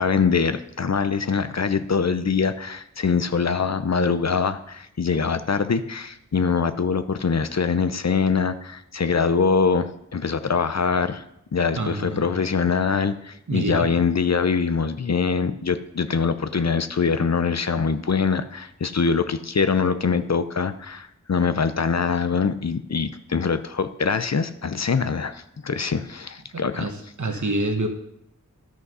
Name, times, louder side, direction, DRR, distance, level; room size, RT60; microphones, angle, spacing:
voice 1, 0.0-11.2 11.5-26.9, left 5 dB, 50° left, 11 dB, 0.6 m, -23 dB
voice 2, 11.8-12.3 13.5-13.9 26.5-27.9, right 2 dB, 60° right, 5 dB, 1.3 m, -27 dB
11.0 x 6.2 x 5.5 m, 0.78 s
wide cardioid pair, 40°, 33 cm